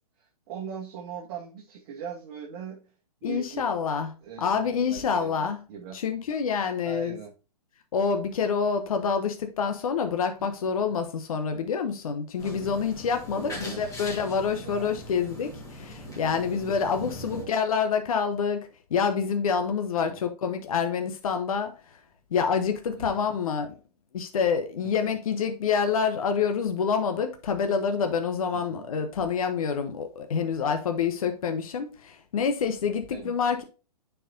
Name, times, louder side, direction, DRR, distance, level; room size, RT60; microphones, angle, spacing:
voice 1, 0.2-2.8 3.2-3.7 4.2-6.0 6.8-7.3 10.4-10.5 13.3-13.8 14.6-14.9 16.0-16.3 16.8-16.9 17.3-17.5 19.9-20.2 23.0-23.3 24.8-25.1 28.5-28.9 33.1-33.4, right 7 dB, 40° right, 1.3 m, -40 dB
voice 2, 3.2-4.1 4.4-5.6 5.9-7.2 7.9-21.7 22.3-23.7 24.1-33.6, left 6 dB, 65° left, 0.9 m, -27 dB
sound 1, 12.4-17.4, left 1 dB, 15° left, 2.5 m, -41 dB
9.9 x 4.7 x 2.6 m
figure-of-eight pair, 120°, 20 cm